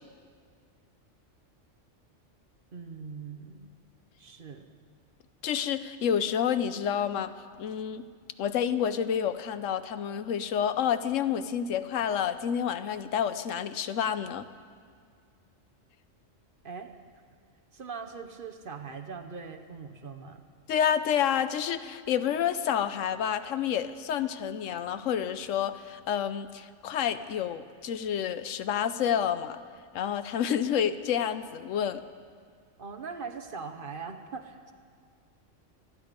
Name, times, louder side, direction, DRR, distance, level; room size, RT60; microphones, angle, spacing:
voice 1, 2.7-3.7 4.2-4.7 16.6-16.9 17.7-20.4 32.8-34.7, right 5 dB, 50° right, 6 dB, 1.0 m, -41 dB
voice 2, 5.4-7.3 7.6-8.0 8.4-14.5 20.7-29.6 29.9-32.0, left 8 dB, 80° left, 12 dB, 1.0 m, -29 dB
25.5 x 10.0 x 5.1 m, 2.1 s
omnidirectional pair, 1.3 m